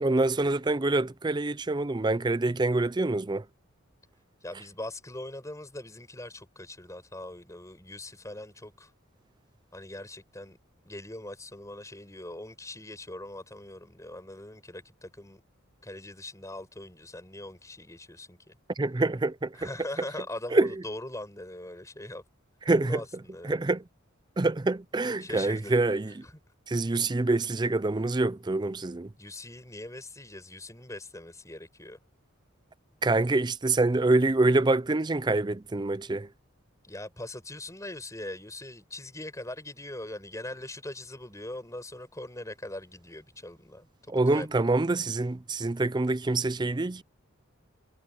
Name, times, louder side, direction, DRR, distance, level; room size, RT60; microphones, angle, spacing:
voice 1, 0.0-3.4 18.8-19.7 20.5-20.8 22.7-23.0 23.4-23.8 24.4-26.3 26.7-29.1 33.0-36.3 44.1-47.0, right 2 dB, 20° right, 0.5 m, -26 dB
voice 2, 4.4-8.9 9.7-10.6 10.9-15.4 15.8-18.6 19.6-22.2 22.7-23.6 25.2-25.8 26.2-26.3 29.2-32.0 36.8-43.9 44.3-44.5, left 1 dB, 15° left, 6.1 m, -41 dB
head